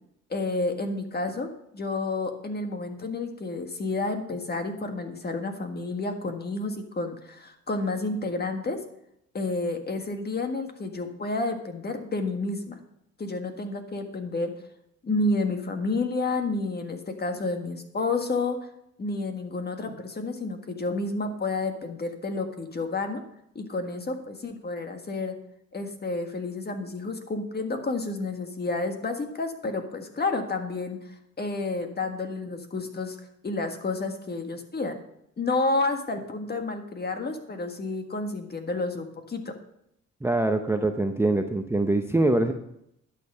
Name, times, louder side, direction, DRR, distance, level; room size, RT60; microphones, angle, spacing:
voice 1, 0.3-8.8 9.3-12.8 13.2-14.5 15.0-18.6 19.0-23.2 23.5-25.4 25.7-33.2 33.4-35.0 35.4-39.5, left 3 dB, 35° left, 6 dB, 1.6 m, -30 dB
voice 2, 40.2-42.5, right 2 dB, 10° right, 5 dB, 0.7 m, -24 dB
11.5 x 6.9 x 5.5 m, 0.77 s
cardioid pair, 90°, 30 cm